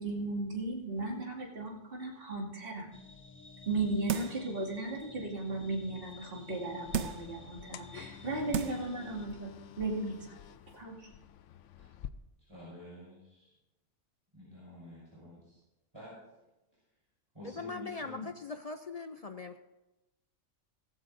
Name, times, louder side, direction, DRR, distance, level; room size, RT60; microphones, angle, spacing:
voice 1, 0.0-2.9 3.7-10.3 10.7-11.1, right 2 dB, 45° right, -2 dB, 2.6 m, -36 dB
sound 1, 2.9-9.3, left 3 dB, 10° left, 0.9 m, -52 dB
sound 2, 4.1-4.5 5.0-5.1 6.9-7.4 8.1-8.2 8.5-8.9 9.3-9.4, right 9 dB, 70° right, 0.9 m, -34 dB
sound 3, 6.9-12.1, left 10 dB, 75° left, 0.9 m, -48 dB
voice 2, 12.5-13.5 14.3-15.6 15.9-16.1 17.3-18.3, equal, 20° right, -9 dB, 5.5 m, -49 dB
voice 3, 17.4-19.6, left 4 dB, 55° left, 8 dB, 0.4 m, -40 dB
16.5 x 15.5 x 2.7 m, 1.0 s
omnidirectional pair, 1.3 m